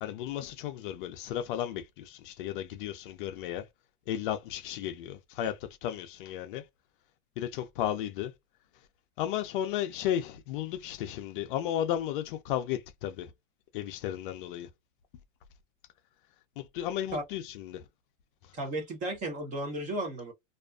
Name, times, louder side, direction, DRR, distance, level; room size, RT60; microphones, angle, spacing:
voice 1, 0.0-3.6 4.1-5.6 5.8-6.6 7.4-8.3 9.2-13.3 13.7-14.7 16.6-17.8, left 11 dB, 45° left, 0.4 m, -34 dB
voice 2, 18.5-20.3, right 1 dB, 20° right, 0.6 m, -34 dB
2.4 x 2.3 x 2.3 m
supercardioid pair, 145°, 38 cm